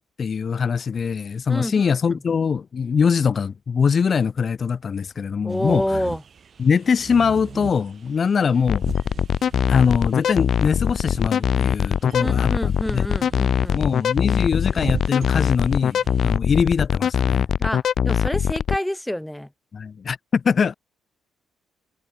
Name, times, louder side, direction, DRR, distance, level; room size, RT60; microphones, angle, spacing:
voice 1, 0.0-6.0 6.6-8.8 9.7-13.0 13.7-17.5 19.7-20.7, left 6 dB, 45° left, 1.3 m, -22 dB
voice 2, 1.5-1.8 2.1-2.2 5.4-6.2 12.2-13.8 17.6-19.5, left 1 dB, 5° left, 2.8 m, -27 dB
sound 1, 5.5-16.4, right 7 dB, 50° right, 5.2 m, -39 dB
sound 2, 8.7-18.8, left 8 dB, 60° left, 2.1 m, -21 dB
cardioid pair, 90°, 0 cm